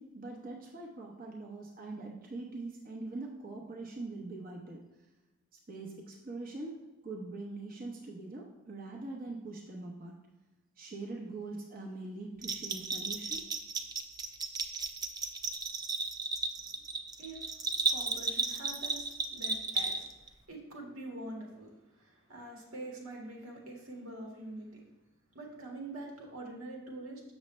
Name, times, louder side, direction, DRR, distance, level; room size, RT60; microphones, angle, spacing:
voice 1, 0.0-4.8 5.7-6.8 7.0-10.2 10.8-13.5, right 2 dB, 45° right, -1 dB, 0.9 m, -43 dB
Bell, 12.4-20.3, right 4 dB, 20° right, 0.4 m, -34 dB
voice 2, 17.2-17.5 17.9-20.1 20.5-24.8 25.3-27.2, right 2 dB, 90° right, -1 dB, 1.9 m, -45 dB
7.1 x 6.2 x 3.2 m, 1.0 s
head